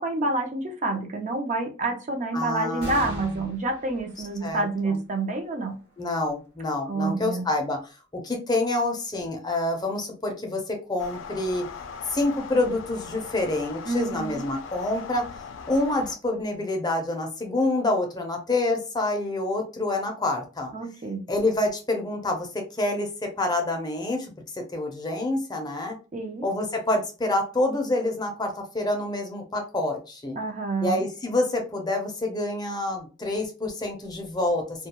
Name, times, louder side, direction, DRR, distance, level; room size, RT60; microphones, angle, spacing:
voice 1, 0.0-5.8 6.9-7.4 13.9-14.5 20.7-21.2 26.1-26.5 30.4-31.0, right 2 dB, 40° right, 0.5 m, -28 dB
voice 2, 2.3-3.4 4.4-5.0 6.0-7.8 8.1-11.6 12.1-15.3 15.7-20.7 21.3-26.0 26.4-30.4 30.8-34.9, left 2 dB, 20° left, 0.5 m, -27 dB
sound 1, 2.8-9.7 10.3-10.4 11.5-12.1, equal, 55° right, 0.9 m, -46 dB
sound 2, 11.0-16.2, left 6 dB, 85° left, 0.4 m, -40 dB
2.2 x 2.2 x 2.9 m
head